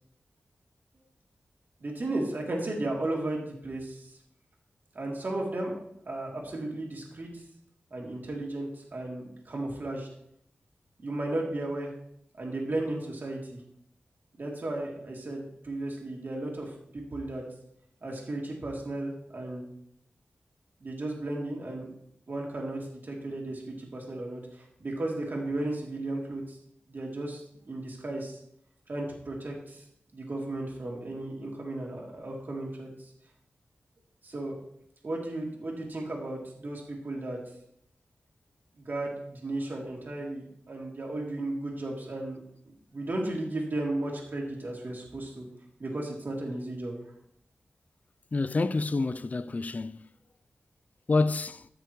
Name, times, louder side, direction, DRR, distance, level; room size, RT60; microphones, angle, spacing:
voice 1, 1.8-4.1 4.9-5.8 6.1-7.4 7.9-10.1 11.0-11.9 12.4-13.6 14.4-17.4 18.0-19.7 20.8-21.9 22.3-26.6 26.9-27.4 27.7-28.4 28.9-29.8 30.1-32.9 34.2-34.6 35.0-37.4 38.8-42.4 42.9-45.5 45.8-46.9, right 2 dB, 55° right, 2.8 m, -34 dB
voice 2, 48.3-50.1 51.1-51.7, left 3 dB, 40° left, 0.4 m, -28 dB
14.0 x 6.8 x 3.1 m
cardioid pair, 60°, 4 cm